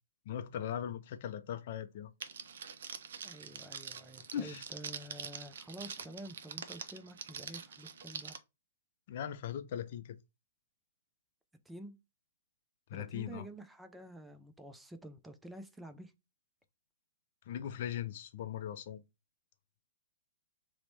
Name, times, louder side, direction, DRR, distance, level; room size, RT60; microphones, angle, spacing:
voice 1, 0.3-2.1 4.3-4.6 9.1-10.2 12.9-13.5 17.5-19.0, left 9 dB, 50° left, 0.4 m, -39 dB
Crackle, 2.2-8.4, right 7 dB, 60° right, 0.4 m, -45 dB
voice 2, 3.2-8.4 11.7-12.0 12.9-16.1, right 1 dB, 5° right, 0.4 m, -49 dB
3.0 x 2.1 x 4.1 m
figure-of-eight pair, 115°, 0 cm